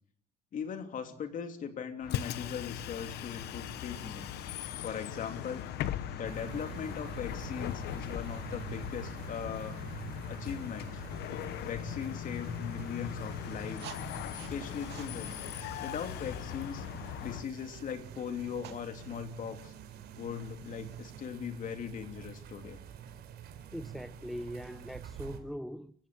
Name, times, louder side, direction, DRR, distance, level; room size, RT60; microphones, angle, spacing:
voice 1, 0.5-4.4 4.8-5.6 6.2-9.8 10.3-11.0 11.6-13.9 14.3-15.4 15.8-16.9 17.2-19.7 20.2-22.8, left 7 dB, 50° left, 3.1 m, -39 dB
Bus, 2.0-17.4, left 11 dB, 80° left, 1.1 m, -39 dB
sound 1, 3.1-21.3, right 10 dB, 85° right, 2.3 m, -53 dB
sound 2, 6.2-25.4, right 9 dB, 70° right, 4.1 m, -47 dB
voice 2, 23.7-25.9, equal, ahead, 0.8 m, -41 dB
29.0 x 16.0 x 7.7 m
cardioid pair, 110°, 17 cm